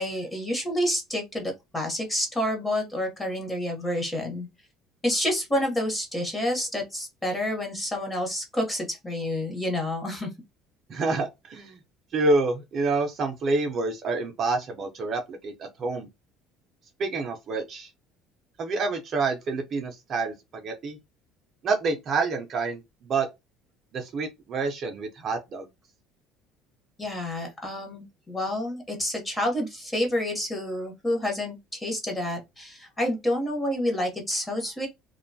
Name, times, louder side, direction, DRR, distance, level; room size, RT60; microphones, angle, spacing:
voice 1, 0.0-4.5 5.0-10.3 27.0-34.9, left 1 dB, 10° left, 0.9 m, -29 dB
voice 2, 10.9-11.8 12.1-16.1 17.0-17.9 18.6-21.0 21.6-22.8 23.1-23.3 23.9-25.6, right 3 dB, 35° right, 0.5 m, -27 dB
2.5 x 2.2 x 2.6 m
cardioid pair, 160°, 0 cm